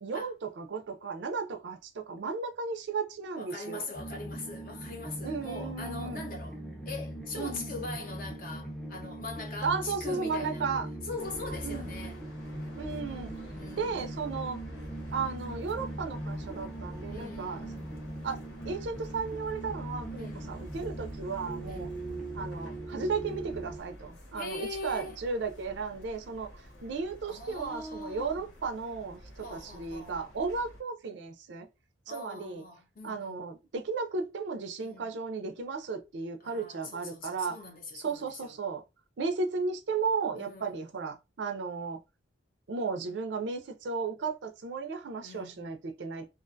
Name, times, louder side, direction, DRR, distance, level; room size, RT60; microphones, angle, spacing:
voice 1, 0.0-3.8 5.2-6.2 7.4-7.7 9.6-10.9 11.6-11.9 12.8-13.3 13.8-14.6 15.1-17.6 18.2-18.4 18.6-21.9 22.4-31.7 32.1-32.6 33.0-37.6 37.9-38.8 39.2-42.0 42.7-46.4, right 4 dB, 70° right, 0.4 m, -34 dB
voice 2, 3.4-6.6 6.9-10.7 11.1-12.2 13.5-14.2 17.1-17.9 20.2-20.6 21.6-22.3 24.3-25.2 27.2-28.5 29.4-30.2 32.1-33.5 34.8-35.1 36.4-38.5 40.3-40.8 45.2-45.7, left 3 dB, 45° left, 0.6 m, -42 dB
sound 1, 3.9-23.8, right 1 dB, ahead, 0.4 m, -40 dB
sound 2, 11.2-30.8, equal, 90° left, 1.0 m, -49 dB
2.4 x 2.2 x 2.6 m
head